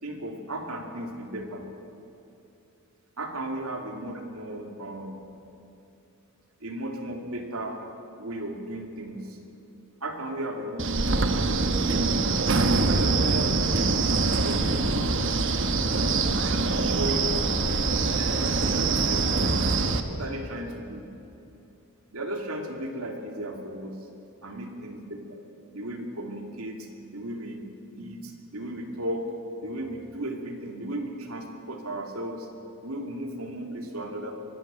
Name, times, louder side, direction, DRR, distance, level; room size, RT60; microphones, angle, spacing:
voice 1, 0.0-1.6 3.2-5.2 6.6-7.8 8.2-9.4 10.0-17.9 18.4-19.7 20.1-21.1 22.1-24.0 24.4-25.4 25.7-26.9 27.1-27.6 27.9-29.3 29.6-32.5 32.8-34.3, right 1 dB, 80° right, 3 dB, 2.7 m, -36 dB
Wind, 10.8-20.0, right 3 dB, 60° right, 1.2 m, -24 dB
23.5 x 12.5 x 9.0 m, 2.8 s
head